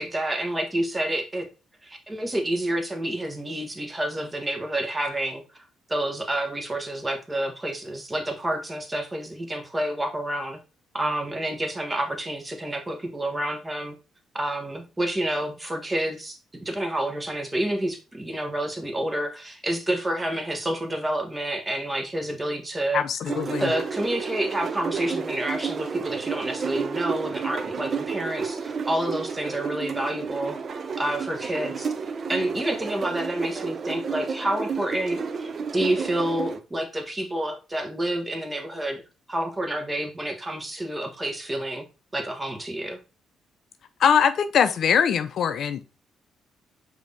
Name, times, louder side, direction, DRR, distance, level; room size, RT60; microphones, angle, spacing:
voice 1, 0.0-1.5 1.8-10.6 10.9-13.9 14.3-23.0 23.6-30.6 31.0-31.9 32.3-39.0 39.3-41.8 42.1-43.0, right 1 dB, 20° right, 1.2 m, -29 dB
voice 2, 22.9-23.7 44.0-45.9, left 7 dB, 65° left, 0.4 m, -22 dB
sound 1, 23.3-36.6, right 5 dB, 50° right, 0.5 m, -31 dB
5.0 x 2.7 x 3.3 m
supercardioid pair, 55°, 0 cm